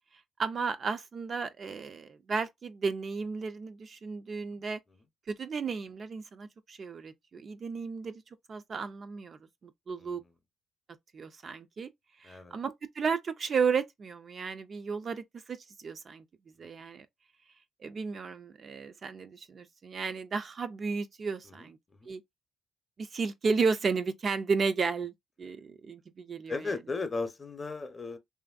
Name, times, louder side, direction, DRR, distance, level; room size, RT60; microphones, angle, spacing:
voice 1, 0.4-4.8 5.3-8.2 8.5-10.2 11.1-11.9 12.2-16.2 16.6-17.1 17.8-21.8 22.1-22.2 23.0-26.7, right 5 dB, 45° right, 0.3 m, -33 dB
voice 2, 26.5-28.2, left 3 dB, 30° left, 0.6 m, -36 dB
3.0 x 2.5 x 2.3 m
cardioid pair, 90°, 0 cm